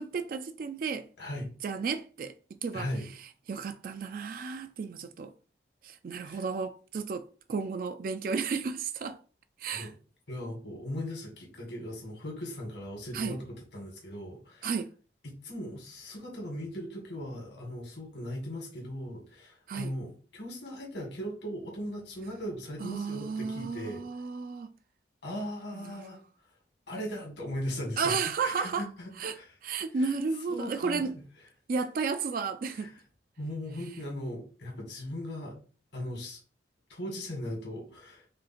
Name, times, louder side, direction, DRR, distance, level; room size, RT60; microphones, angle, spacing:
voice 1, 0.0-1.1 1.6-2.3 2.6-2.9 3.5-5.3 5.8-9.2 9.6-9.9 13.1-13.4 14.6-14.9 19.7-19.9 22.8-24.7 25.7-26.0 28.0-28.9 29.2-29.4 29.6-31.1 31.7-32.9, right 5 dB, 50° right, 0.3 m, -33 dB
voice 2, 1.2-1.5 2.7-3.1 6.2-6.4 9.7-10.0 10.3-14.7 15.2-24.0 25.2-26.2 26.9-29.5 29.9-30.2 30.5-31.2 32.7-33.0 33.4-35.6 35.9-36.4 36.9-38.3, equal, 75° left, 2.0 m, -38 dB
5.0 x 2.4 x 4.3 m
head